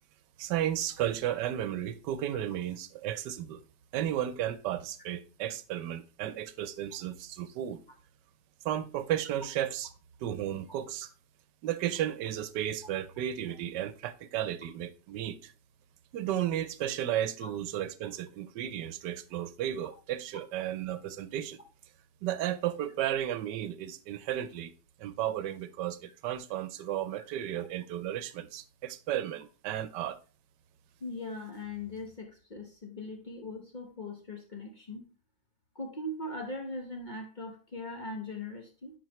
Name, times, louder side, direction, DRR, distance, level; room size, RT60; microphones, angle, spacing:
voice 1, 0.4-3.6 3.9-7.8 8.6-9.9 10.2-11.1 11.6-15.5 16.1-21.6 22.2-24.7 25.0-30.2, right 11 dB, 85° right, 1.2 m, -34 dB
voice 2, 31.0-35.1 35.7-38.9, left 2 dB, 35° left, 1.0 m, -40 dB
10.5 x 4.3 x 3.0 m
omnidirectional pair, 1.8 m